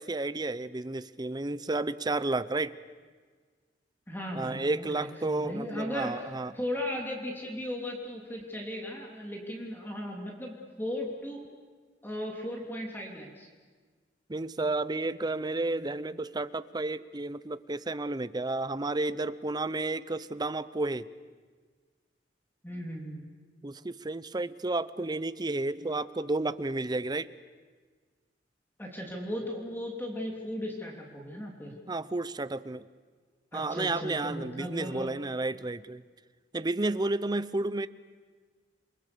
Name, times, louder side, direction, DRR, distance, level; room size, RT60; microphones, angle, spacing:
voice 1, 0.0-2.8 4.3-6.5 14.3-21.0 23.6-27.3 31.9-32.8 33.5-36.0 36.5-37.9, right 2 dB, 25° right, 15 dB, 0.7 m, -31 dB
voice 2, 4.1-6.3 6.5-11.4 12.0-13.5 22.6-23.2 28.8-31.7 33.5-35.1, left 1 dB, 10° left, 0 dB, 3.0 m, -36 dB
28.5 x 23.0 x 6.9 m, 1.5 s
head